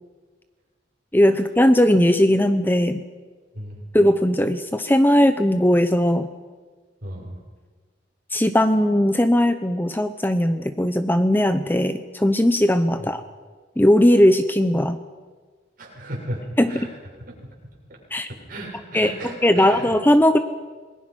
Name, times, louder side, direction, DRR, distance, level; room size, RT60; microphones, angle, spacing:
voice 1, 1.1-3.0 3.9-6.3 8.3-13.2 13.8-15.0 16.6-16.9 18.1-18.3 18.9-19.1 19.4-20.4, left 1 dB, 10° left, 10 dB, 0.8 m, -18 dB
voice 2, 7.0-7.4 13.0-13.1 15.8-16.9 17.3-17.4 17.9-18.0 18.3-19.9, right 1 dB, 50° right, -2 dB, 7.5 m, -35 dB
28.0 x 21.0 x 6.2 m, 1.4 s
head